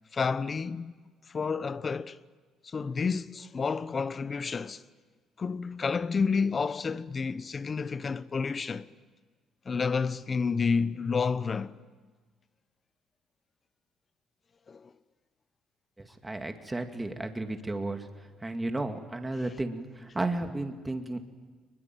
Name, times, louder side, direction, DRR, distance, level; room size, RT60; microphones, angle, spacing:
voice 1, 0.1-0.9 1.3-2.2 2.6-4.8 5.4-8.9 9.6-11.7 14.7-14.9, left 5 dB, 35° left, 0.9 m, -30 dB
voice 2, 16.2-18.1 18.4-21.2, right 2 dB, 15° right, 2.3 m, -33 dB
22.5 x 21.5 x 9.3 m
cardioid pair, 85°, 0 cm